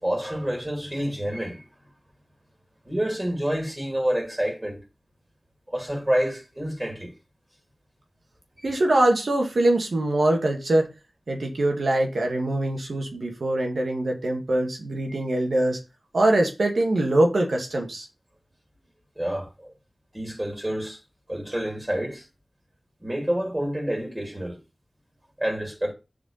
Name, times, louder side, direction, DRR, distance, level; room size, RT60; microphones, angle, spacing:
voice 1, 0.0-1.7 2.8-4.8 5.7-7.1 8.6-8.7 15.1-15.2 19.1-19.7 20.1-21.0 21.3-22.3 23.0-24.6 25.4-25.9, equal, 20° right, 3.2 m, -28 dB
voice 2, 8.6-10.9 11.3-15.8 16.1-18.1, right 1 dB, 90° right, 2.2 m, -23 dB
7.1 x 5.1 x 5.7 m
wide cardioid pair, 70°, 0 cm